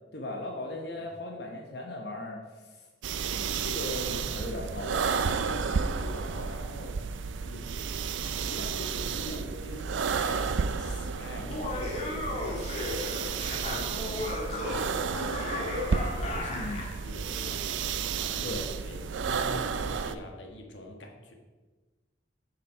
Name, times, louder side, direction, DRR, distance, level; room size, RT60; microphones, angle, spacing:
voice 1, 0.1-2.9 3.3-5.3 16.5-16.9 18.4-18.7, left 1 dB, 65° left, 0 dB, 1.0 m, -38 dB
sound 1, 3.0-20.2, right 5 dB, 90° right, 0.5 m, -32 dB
voice 2, 5.4-7.1 7.4-21.3, left 1 dB, 90° left, 2 dB, 1.4 m, -44 dB
Laughter, 11.4-17.0, left 2 dB, 35° left, 1.7 m, -35 dB
8.4 x 5.9 x 5.3 m, 1.3 s
head